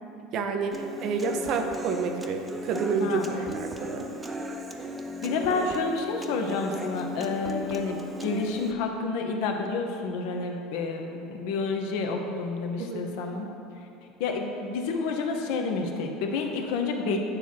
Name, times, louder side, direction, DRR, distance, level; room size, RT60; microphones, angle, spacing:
voice 1, 0.3-4.1 12.8-13.1, right 5 dB, 55° right, 5 dB, 0.7 m, -29 dB
Human voice / Acoustic guitar, 0.7-8.7, equal, 20° right, 0.6 m, -37 dB
voice 2, 5.2-13.5 14.2-17.2, left 4 dB, 70° left, 3 dB, 0.8 m, -29 dB
9.1 x 3.1 x 5.8 m, 2.8 s
hypercardioid pair, 85°, 0 cm